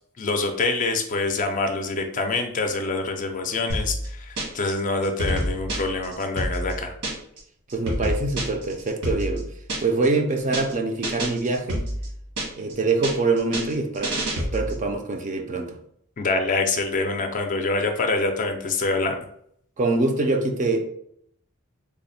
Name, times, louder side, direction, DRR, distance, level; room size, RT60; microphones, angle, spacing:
voice 1, 0.2-6.9 16.2-19.3, left 3 dB, 35° left, 5 dB, 0.4 m, -25 dB
sound 1, 3.7-4.7 5.0-7.4 7.7-10.1 10.4-10.7 11.0-12.7 13.0-14.8, right 1 dB, 75° right, 1.2 m, -28 dB
voice 2, 7.7-9.5 9.8-11.8 12.6-15.8 19.8-20.8, right 3 dB, 35° right, 4 dB, 0.4 m, -24 dB
3.3 x 2.1 x 4.1 m, 0.69 s
head